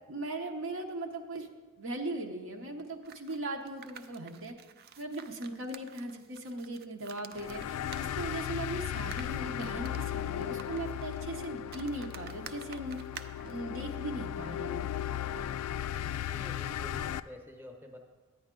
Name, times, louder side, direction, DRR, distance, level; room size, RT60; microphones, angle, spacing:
voice 1, 0.1-1.5 1.8-4.6 5.0-13.0 13.4-14.9 15.3-15.4, right 2 dB, 65° right, 3 dB, 0.9 m, -39 dB
sound 1, 3.0-13.6, right 7 dB, 45° right, 0.4 m, -50 dB
sound 2, 7.3-17.2, left 10 dB, 85° left, 0.3 m, -36 dB
voice 2, 16.2-18.0, left 1 dB, 10° right, 2 dB, 0.9 m, -50 dB
9.8 x 9.4 x 3.7 m, 1.3 s
head